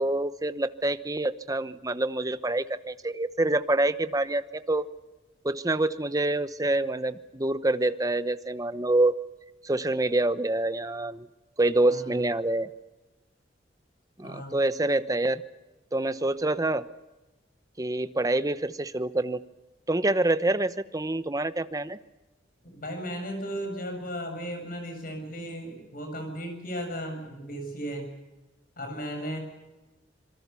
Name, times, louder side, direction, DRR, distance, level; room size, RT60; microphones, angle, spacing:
voice 1, 0.0-4.9 5.4-9.2 9.6-11.3 11.6-12.7 14.2-15.4 15.9-16.9 17.8-19.4 19.9-22.0, right 2 dB, 20° right, 12 dB, 0.9 m, -26 dB
voice 2, 11.9-12.2 14.2-14.6 22.6-28.1 28.8-29.4, equal, 50° left, 5 dB, 7.8 m, -35 dB
26.5 x 22.5 x 7.0 m, 1.1 s
head